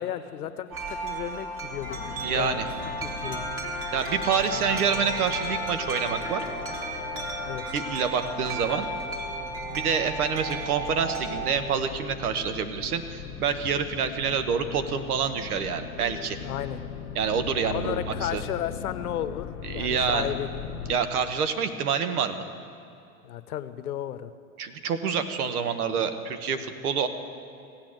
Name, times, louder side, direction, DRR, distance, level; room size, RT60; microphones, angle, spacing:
voice 1, 0.0-2.0 2.3-2.6 3.0-3.5 7.5-7.6 16.4-16.8 17.7-20.5 23.2-24.3, left 11 dB, 85° left, 12 dB, 0.9 m, -33 dB
Wind chime, 0.7-11.5, right 3 dB, 30° right, 2.3 m, -34 dB
sound 1, 1.8-21.0, left 7 dB, 55° left, 1.4 m, -40 dB
Trumpet, 1.9-9.0, left 7 dB, 20° left, 1.5 m, -40 dB
voice 2, 2.2-2.7 3.9-6.4 7.7-8.9 9.7-16.4 17.1-18.4 19.7-20.3 20.9-22.4 24.6-27.1, right 6 dB, 80° right, 9 dB, 1.3 m, -27 dB
15.5 x 8.9 x 7.7 m, 2.7 s
hypercardioid pair, 120°, 44 cm